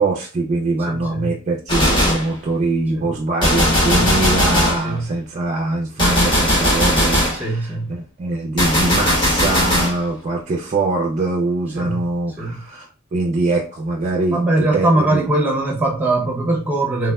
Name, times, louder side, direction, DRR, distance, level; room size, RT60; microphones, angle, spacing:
voice 1, 0.0-15.2, right 2 dB, 35° right, 0.3 m, -23 dB
voice 2, 0.9-1.3 2.9-3.1 3.9-4.2 4.8-5.1 7.4-7.9 11.7-12.0 12.4-12.6 14.3-17.1, right 2 dB, 10° right, 0.7 m, -21 dB
Gunshot gunfire, 1.7-2.3 3.4-4.9 6.0-7.4 8.6-10.0, left 1 dB, 20° left, 0.8 m, -18 dB
3.4 x 2.0 x 2.2 m
head